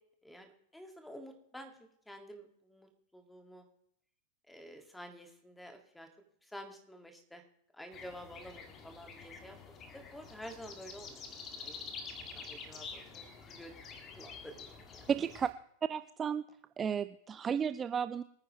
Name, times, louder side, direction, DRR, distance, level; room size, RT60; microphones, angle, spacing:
voice 1, 0.2-1.7 2.1-3.6 4.5-6.1 6.5-7.4 7.7-9.6 9.9-11.2 11.6-11.8 12.3-13.7 14.1-15.1, equal, 5° left, 5 dB, 2.1 m, -50 dB
sound 1, 7.9-15.5, left 5 dB, 30° left, 1.8 m, -48 dB
voice 2, 15.1-15.5 15.9-16.5 16.8-18.2, right 7 dB, 20° right, 13 dB, 0.4 m, -33 dB
25.0 x 9.7 x 3.2 m, 0.71 s
figure-of-eight pair, 90°, 0 cm